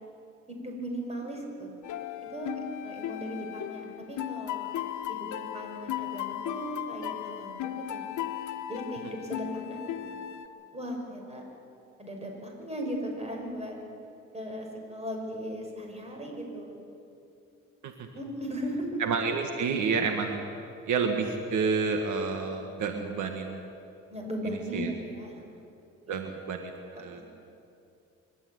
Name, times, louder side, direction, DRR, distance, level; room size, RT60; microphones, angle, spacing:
voice 1, 0.5-1.7 2.3-4.7 5.1-8.1 8.7-10.2 10.7-11.4 12.0-13.8 14.3-16.8 18.1-18.9 24.1-25.4 26.1-26.2 27.1-27.2, equal, 20° right, 1 dB, 6.0 m, -37 dB
sound 1, 1.8-10.5, left 12 dB, 75° left, 1.2 m, -36 dB
voice 2, 19.0-20.4 20.9-23.6 24.5-24.9 26.1-27.2, right 5 dB, 75° right, 4 dB, 1.8 m, -29 dB
24.5 x 12.5 x 9.6 m, 2.6 s
cardioid pair, 90°, 30 cm